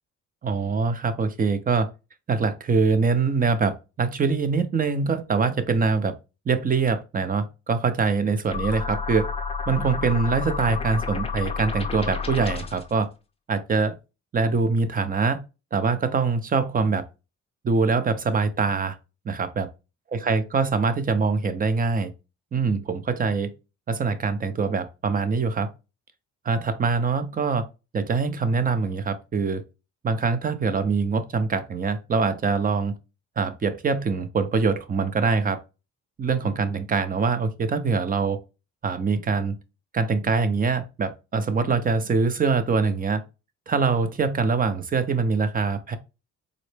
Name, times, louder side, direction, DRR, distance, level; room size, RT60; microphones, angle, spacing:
voice 1, 0.4-1.9 2.3-6.1 6.5-9.3 9.7-13.1 13.5-14.0 14.3-15.4 15.7-17.0 17.6-19.0 19.3-19.7 20.1-22.1 22.5-23.5 23.9-25.7 26.4-27.6 27.9-29.6 30.0-32.9 33.4-35.6 36.2-38.4 38.8-39.6 39.9-43.2 43.7-46.0, right 4 dB, 30° right, 0.5 m, -24 dB
sound 1, 8.5-12.9, left 5 dB, 20° left, 0.6 m, -30 dB
3.8 x 2.1 x 3.2 m
cardioid pair, 90°, 30 cm